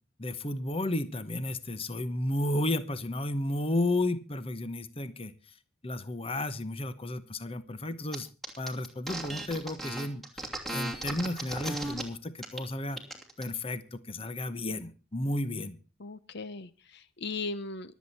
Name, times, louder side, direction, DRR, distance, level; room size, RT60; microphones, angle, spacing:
voice 1, 0.2-5.3 5.8-8.3 8.6-13.0 13.4-15.8, left 1 dB, 30° left, 13 dB, 1.0 m, -33 dB
sound 1, 8.1-8.2 8.4-12.0 12.4-12.6 12.9-13.4, right 1 dB, ahead, 2.8 m, -36 dB
voice 2, 16.0-18.0, left 3 dB, 55° left, 14 dB, 0.8 m, -38 dB
24.5 x 8.4 x 4.2 m, 0.34 s
head